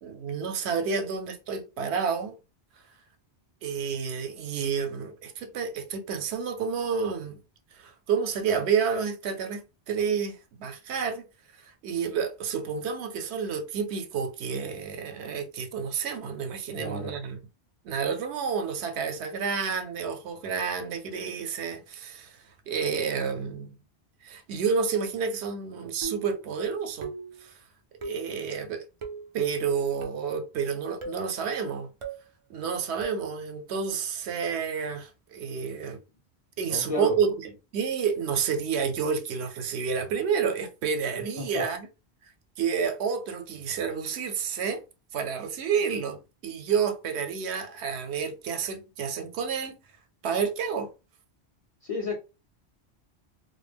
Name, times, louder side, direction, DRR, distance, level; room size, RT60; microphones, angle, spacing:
voice 1, 0.0-2.4 3.6-7.4 7.7-11.3 11.5-17.4 17.8-23.7 24.2-27.1 27.4-27.6 28.0-28.8 29.3-31.9 32.5-36.0 36.6-41.9 42.6-44.8 45.1-49.8 50.2-50.9, right 6 dB, 80° right, 0.8 m, -30 dB
voice 2, 16.8-17.1 36.7-37.1 41.4-41.7 51.8-52.1, left 3 dB, 45° left, 0.5 m, -32 dB
sound 1, 26.0-26.4 27.0-27.4 28.0-28.3 29.0-29.3 30.0-30.3 31.0-31.3 32.0-32.3 33.0-33.3, right 4 dB, 50° right, 0.3 m, -38 dB
2.1 x 2.0 x 3.3 m
omnidirectional pair, 1.1 m